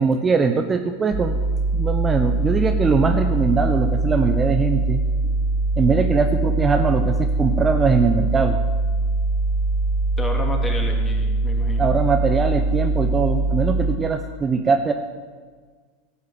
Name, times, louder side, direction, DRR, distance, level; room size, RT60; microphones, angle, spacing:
voice 1, 0.0-1.4 1.7-5.0 5.8-8.6 11.8-14.9, right 5 dB, 20° right, 6 dB, 0.9 m, -21 dB
sound 1, 1.1-13.9, right 2 dB, 50° right, 2.3 m, -22 dB
voice 2, 10.2-11.9, left 1 dB, 15° left, 1 dB, 3.0 m, -30 dB
16.5 x 8.1 x 7.9 m, 1.5 s
figure-of-eight pair, 85°, 0 cm